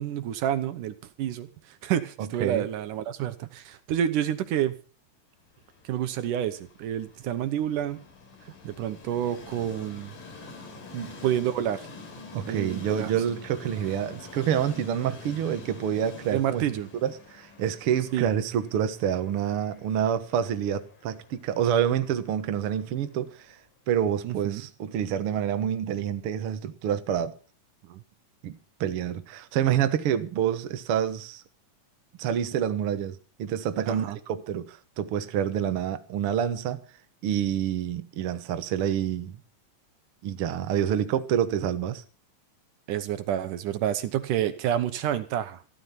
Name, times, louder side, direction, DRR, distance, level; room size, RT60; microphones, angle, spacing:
voice 1, 0.0-4.7 5.8-8.0 8.5-10.2 11.2-11.9 12.5-13.1 16.3-16.9 18.1-18.3 24.2-24.6 27.8-28.0 33.9-34.2 42.9-45.6, right 10 dB, 75° right, 2.5 m, -29 dB
Train, 5.5-23.5, left 3 dB, 85° left, 5.2 m, -47 dB
voice 2, 12.3-16.6 17.0-23.5 23.9-27.3 28.4-31.4 32.2-36.8 37.2-39.4 40.2-42.0, right 9 dB, 55° right, 1.7 m, -27 dB
15.0 x 13.0 x 5.8 m
omnidirectional pair, 3.9 m